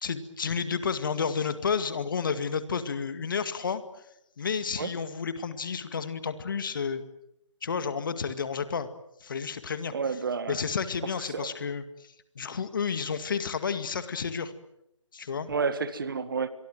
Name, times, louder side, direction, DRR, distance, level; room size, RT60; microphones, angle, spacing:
voice 1, 0.0-3.8 4.4-7.0 7.6-8.9 9.2-10.2 10.5-14.5 15.1-15.5, left 6 dB, 40° left, 11 dB, 2.1 m, -31 dB
voice 2, 9.9-10.6 11.3-11.5 15.5-16.5, right 5 dB, 45° right, 13 dB, 1.8 m, -30 dB
27.5 x 23.0 x 7.8 m, 0.79 s
figure-of-eight pair, 155°, 16 cm